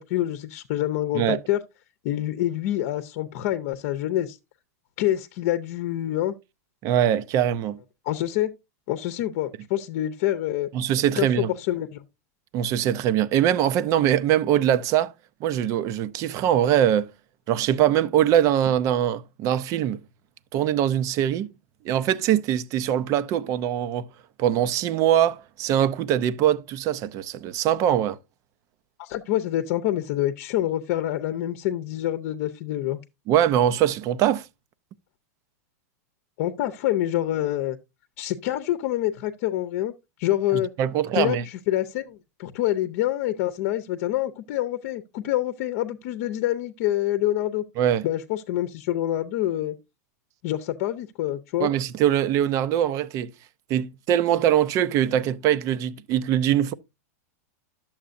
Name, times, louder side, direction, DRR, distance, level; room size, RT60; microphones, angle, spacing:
voice 1, 0.0-1.6 2.0-4.4 5.0-6.3 8.0-8.5 8.9-10.7 11.2-12.0 29.0-33.0 36.4-37.8 38.2-39.9 40.2-40.7 41.1-47.6 48.0-49.7 50.4-51.7, left 13 dB, 55° left, 0.8 m, -26 dB
voice 2, 6.8-7.8 10.7-11.5 12.5-15.1 15.4-17.1 17.5-20.0 20.5-21.5 21.8-24.1 24.4-28.2 33.3-34.5 40.5-41.4 47.8-48.0 51.6-53.3 53.7-56.7, right 10 dB, 40° right, 0.6 m, -22 dB
11.5 x 7.2 x 2.6 m
hypercardioid pair, 130°, 9 cm